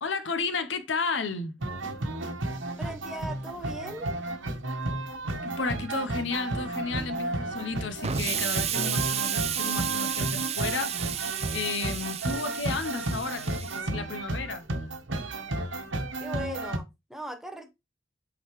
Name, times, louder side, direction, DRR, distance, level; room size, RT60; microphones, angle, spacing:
voice 1, 0.0-1.5 5.4-10.9 11.5-14.7, left 4 dB, 70° left, 0.8 m, -33 dB
sound 1, 1.6-16.8, right 2 dB, 85° right, 1.1 m, -33 dB
voice 2, 2.8-4.1 16.2-17.7, right 1 dB, ahead, 0.8 m, -39 dB
Explosion, 8.0-13.8, right 9 dB, 35° right, 0.5 m, -32 dB
8.5 x 3.9 x 3.1 m
head